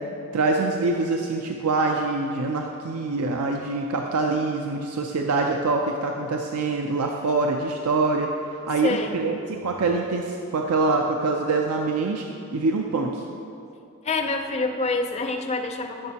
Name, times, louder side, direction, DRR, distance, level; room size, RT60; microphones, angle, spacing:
voice 1, 0.3-12.2 12.5-13.2, right 3 dB, 85° right, 2 dB, 0.5 m, -25 dB
voice 2, 8.8-9.2 14.0-16.1, left 3 dB, 30° left, 4 dB, 0.5 m, -26 dB
13.5 x 6.5 x 2.9 m, 2.6 s
head